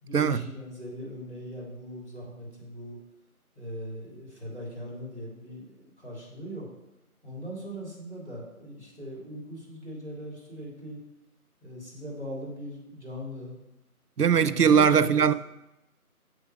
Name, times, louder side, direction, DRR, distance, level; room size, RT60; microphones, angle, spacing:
voice 1, 0.0-3.0 3.6-6.7 7.2-11.0 11.6-13.6 14.2-15.3, equal, 45° right, 3.6 m, -40 dB
voice 2, 14.2-15.3, right 7 dB, 90° right, 0.6 m, -20 dB
7.2 x 6.7 x 5.0 m
figure-of-eight pair, 175°, 45 cm